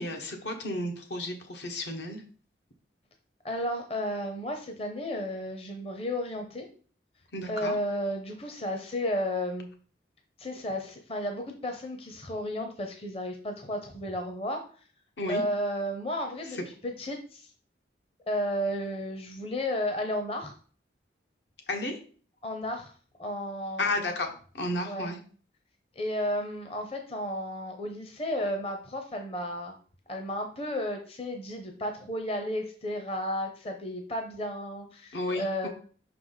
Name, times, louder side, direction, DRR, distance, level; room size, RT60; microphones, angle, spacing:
voice 1, 0.0-2.2 7.3-7.7 15.2-15.4 21.7-22.0 23.8-24.3 24.6-25.2 35.1-35.7, left 2 dB, 75° left, 4 dB, 1.3 m, -32 dB
voice 2, 3.4-6.7 7.5-9.7 10.4-14.7 15.3-17.5 18.3-20.5 22.4-22.9 23.2-23.9 24.8-25.1 26.0-29.7 30.1-35.7, left 1 dB, 30° left, 5 dB, 0.7 m, -33 dB
5.8 x 4.7 x 3.9 m, 0.42 s
head